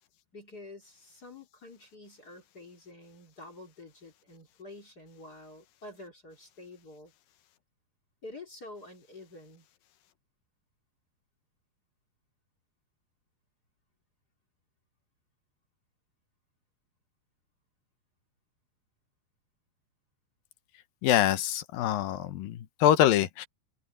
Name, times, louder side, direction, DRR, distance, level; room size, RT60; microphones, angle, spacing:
voice 1, 0.3-7.1 8.2-9.7, left 2 dB, 25° left, 2.9 m, -48 dB
voice 2, 21.0-23.5, left 11 dB, 75° left, 2.6 m, -25 dB
omnidirectional pair, 4.5 m